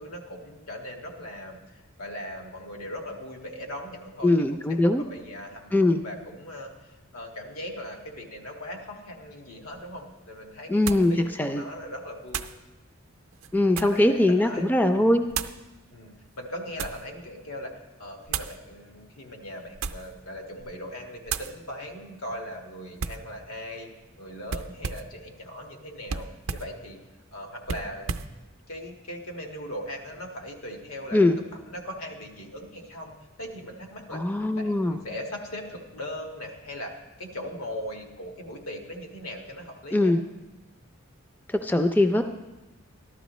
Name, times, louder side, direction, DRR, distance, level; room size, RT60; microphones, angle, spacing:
voice 1, 0.0-1.6 2.0-5.7 6.0-12.5 13.8-14.7 15.0-15.3 15.9-17.7 18.0-23.9 24.2-26.3 26.5-27.0 27.3-28.2 28.7-31.2 31.7-34.2 34.6-36.9 37.2-40.2, left 1 dB, 85° left, 2 dB, 1.7 m, -39 dB
voice 2, 4.2-5.0 5.7-6.0 10.7-11.1 11.4-11.6 13.5-15.3 31.1-31.4 34.1-35.0 39.9-40.2 41.5-42.2, left 1 dB, 10° left, 7 dB, 0.3 m, -21 dB
sound 1, 9.7-9.8 10.9-11.1 12.3-12.6 13.3-14.1 15.3-15.6 16.4-17.1 18.3-18.6 19.7-20.2 20.6-20.8 21.3-21.6 23.0-23.3 24.5-25.2 26.1-26.7 27.6-28.3, right 6 dB, 80° right, 0.5 m, -34 dB
14.0 x 12.0 x 3.1 m, 1.1 s
head